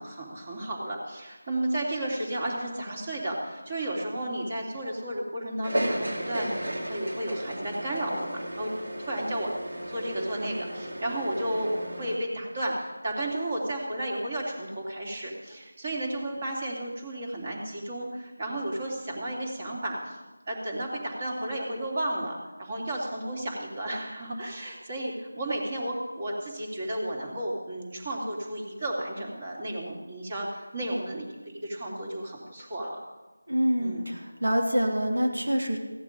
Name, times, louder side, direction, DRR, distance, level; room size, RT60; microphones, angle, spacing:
voice 1, 0.0-8.7 9.0-9.5 9.9-20.2 20.5-33.0 33.8-34.1, right 1 dB, 30° right, -1 dB, 2.8 m, -33 dB
sound 1, 5.6-12.2, right 1 dB, 70° right, 2.9 m, -34 dB
voice 2, 33.5-35.8, equal, 90° right, 2 dB, 3.0 m, -26 dB
15.5 x 10.0 x 5.2 m, 1.2 s
figure-of-eight pair, 170°, 0 cm